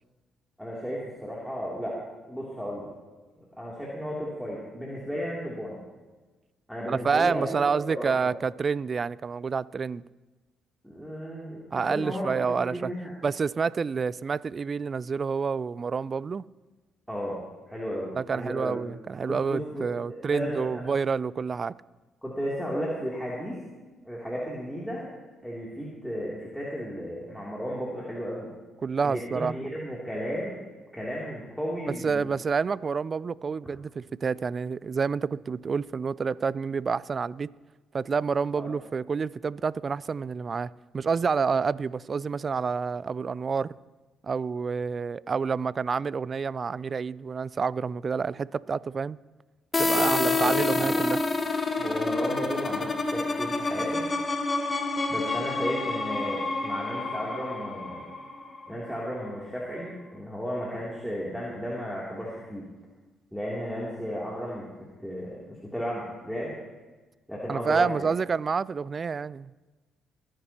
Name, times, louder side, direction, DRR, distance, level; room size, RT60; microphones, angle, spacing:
voice 1, 0.6-2.0 2.3-2.9 3.6-5.8 6.7-8.3 10.8-13.1 17.1-17.4 17.7-18.8 19.3-20.8 22.2-23.6 24.0-25.1 25.4-28.5 29.0-30.6 30.9-32.3 38.5-38.7 49.9-51.0 51.7-54.1 55.1-58.1 58.7-62.6 63.3-66.5 67.3-68.1, equal, ahead, 3.0 m, -34 dB
voice 2, 6.9-10.0 11.7-12.9 13.2-16.5 18.2-21.7 28.8-29.5 32.0-37.5 37.9-43.7 44.2-49.2 49.8-51.2 67.5-69.5, right 5 dB, 45° right, 0.4 m, -28 dB
sound 1, 49.7-59.3, left 3 dB, 30° left, 1.3 m, -28 dB
24.0 x 9.8 x 3.0 m
supercardioid pair, 55°, 0 cm